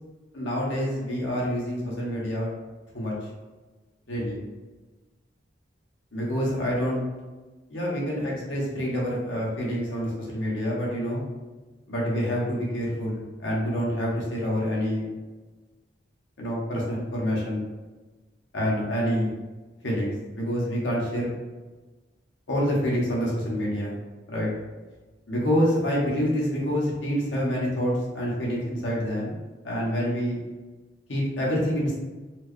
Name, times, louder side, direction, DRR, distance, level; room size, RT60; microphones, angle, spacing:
voice 1, 0.3-2.5 2.9-3.1 4.1-4.4 6.1-7.0 7.7-11.2 11.9-15.1 16.4-17.6 18.5-19.3 19.8-21.3 22.5-24.0 24.3-24.5 25.3-29.4 29.6-30.4 31.1-32.0, equal, 80° left, -4 dB, 1.1 m, -27 dB
4.3 x 2.2 x 3.1 m, 1.2 s
head